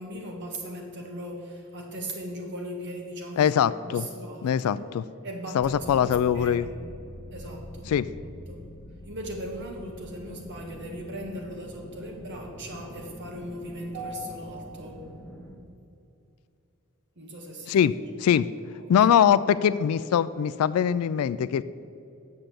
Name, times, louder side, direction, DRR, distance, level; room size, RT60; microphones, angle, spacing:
voice 1, 0.0-4.9 5.2-6.8 7.3-8.7 9.1-15.1 17.2-18.4 18.8-19.1 19.6-19.7, equal, 55° right, 2 dB, 1.7 m, -39 dB
voice 2, 3.4-4.0 4.4-5.0 5.5-6.7 7.9-8.1 17.7-17.9 18.2-18.5 18.9-21.6, left 8 dB, 75° left, 15 dB, 0.3 m, -22 dB
sound 1, 5.6-15.5, equal, 10° left, 1.2 m, -44 dB
8.9 x 6.5 x 7.5 m, 2.6 s
head